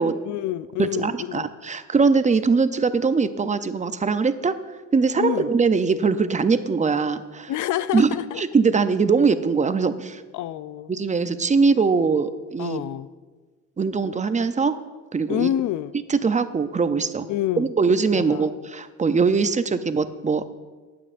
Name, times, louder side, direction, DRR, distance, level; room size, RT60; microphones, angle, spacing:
voice 1, 0.2-1.5 5.2-5.5 7.5-8.4 10.3-10.9 12.6-13.1 15.3-15.9 17.3-17.7 18.1-18.5, left 12 dB, 75° left, 15 dB, 0.5 m, -27 dB
voice 2, 0.8-4.6 4.9-7.5 7.9-8.1 8.4-10.2 10.9-12.8 13.8-14.8 15.1-15.5 16.1-17.3 17.6-20.4, right 4 dB, 25° right, 11 dB, 0.5 m, -21 dB
18.5 x 8.6 x 2.6 m, 1.3 s
cardioid pair, 90°, 30 cm